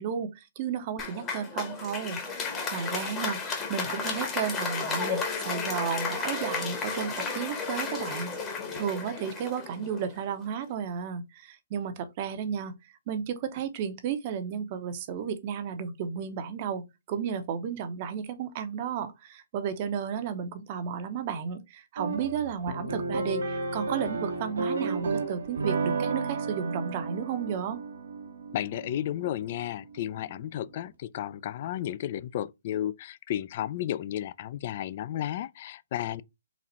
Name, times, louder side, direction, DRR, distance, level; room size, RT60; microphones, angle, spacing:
voice 1, 0.0-8.4 8.7-12.8 13.1-27.8, right 7 dB, 35° right, 0.7 m, -33 dB
Applause, 1.0-10.3, left 5 dB, 20° left, 1.0 m, -33 dB
sound 1, 22.0-30.4, right 4 dB, 80° right, 1.3 m, -33 dB
voice 2, 28.5-36.2, left 12 dB, 40° left, 0.3 m, -33 dB
4.0 x 2.5 x 4.2 m
hypercardioid pair, 150°, 0 cm